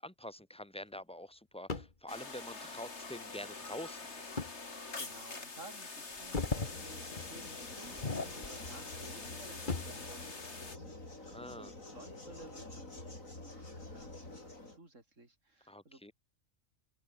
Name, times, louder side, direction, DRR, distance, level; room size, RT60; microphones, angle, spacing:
voice 1, 0.0-4.4 11.3-11.7 15.7-16.1, left 1 dB, 5° left, 1.4 m, -46 dB
sound 1, 1.7-2.0 4.4-4.6 5.1-5.2 6.1-6.8 7.1-7.3 7.9-8.8 9.1-10.0 11.6-12.7 13.2-13.3 14.0-14.4, left 3 dB, 35° left, 2.1 m, -39 dB
sound 2, 2.1-10.8, left 3 dB, 55° left, 3.0 m, -46 dB
voice 2, 5.0-16.0, right 2 dB, 60° right, 6.0 m, -55 dB
sound 3, 6.3-14.8, left 2 dB, 70° left, 6.5 m, -48 dB
omnidirectional pair, 1.4 m